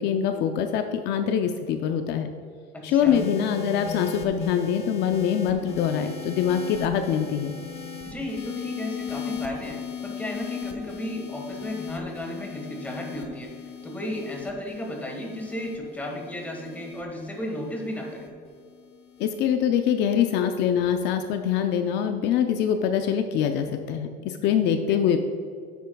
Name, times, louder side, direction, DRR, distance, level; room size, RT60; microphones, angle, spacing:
voice 1, 0.0-2.3 2.8-7.5 19.2-25.2, left 8 dB, 65° left, 6 dB, 0.5 m, -24 dB
voice 2, 2.7-3.2 8.0-18.3 24.7-25.0, left 1 dB, 10° left, 0 dB, 1.4 m, -34 dB
sound 1, 3.1-19.5 20.4-20.8, left 6 dB, 30° left, 0.9 m, -38 dB
10.5 x 8.1 x 2.3 m, 2.4 s
cardioid pair, 155°, 19 cm